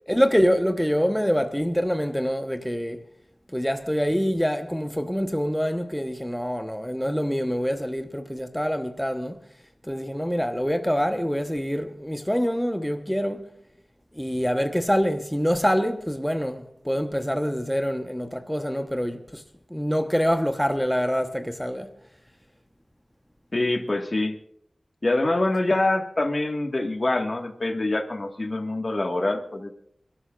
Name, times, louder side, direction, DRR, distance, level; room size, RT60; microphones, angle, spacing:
voice 1, 0.1-3.0 3.5-9.4 9.8-13.5 14.1-19.4 19.7-21.9, equal, 5° left, 1.1 m, -25 dB
voice 2, 23.5-24.4 25.0-29.7, left 2 dB, 50° left, 1.7 m, -25 dB
29.0 x 13.0 x 2.5 m
wide cardioid pair, 65°, 0 cm